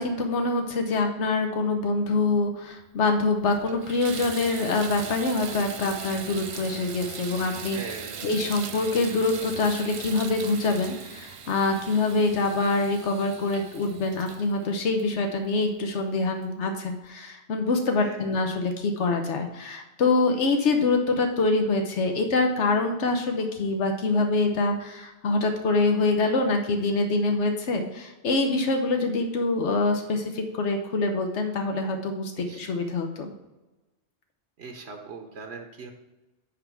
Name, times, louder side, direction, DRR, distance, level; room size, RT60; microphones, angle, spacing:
voice 1, 0.0-7.8 8.2-33.3, left 3 dB, 90° left, 4 dB, 1.2 m, -25 dB
Water tap faucet / Bathtub (filling or washing), 2.8-2.9 3.4-15.8 16.4-16.5 17.0-17.1, right 6 dB, 55° right, 0.3 m, -40 dB
voice 2, 7.7-8.3 18.0-18.2 32.4-32.7 34.6-35.9, right 4 dB, 70° right, 3 dB, 1.1 m, -40 dB
9.8 x 3.5 x 5.9 m, 1.1 s
omnidirectional pair, 1.2 m